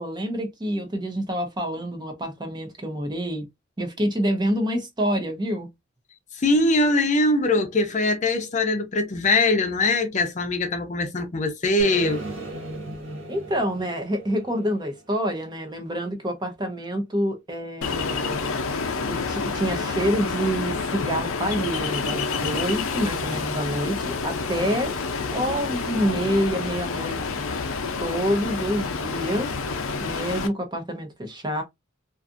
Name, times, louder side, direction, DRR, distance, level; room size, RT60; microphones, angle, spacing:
voice 1, 0.0-3.5 3.8-5.7 13.3-18.4 19.1-24.9 25.3-27.2 28.0-29.5 30.0-31.6, equal, 20° right, 0.6 m, -27 dB
voice 2, 6.4-12.2, left 2 dB, 35° left, 0.6 m, -22 dB
sound 1, 11.8-15.8, right 2 dB, 65° right, 0.6 m, -37 dB
Ocean, 17.8-30.5, left 4 dB, 90° left, 0.6 m, -28 dB
2.5 x 2.4 x 2.5 m
head